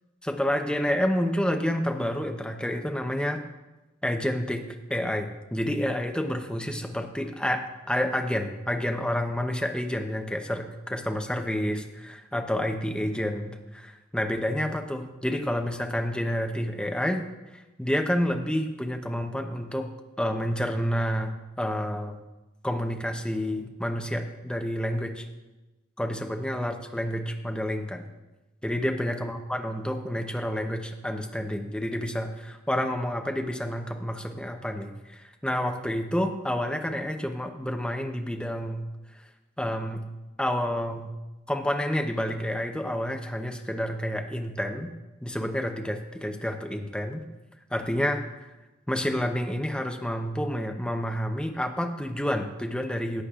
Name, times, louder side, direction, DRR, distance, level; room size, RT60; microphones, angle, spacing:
voice 1, 0.2-3.4 4.0-4.6 4.9-17.2 17.5-19.9 20.2-22.2 22.6-25.2 26.0-28.1 28.6-38.9 39.6-40.1 40.4-41.1 41.5-44.9 45.2-47.2 47.7-48.5 48.9-53.2, equal, 5° left, 4 dB, 0.8 m, -29 dB
17.0 x 8.4 x 2.5 m, 1.1 s
head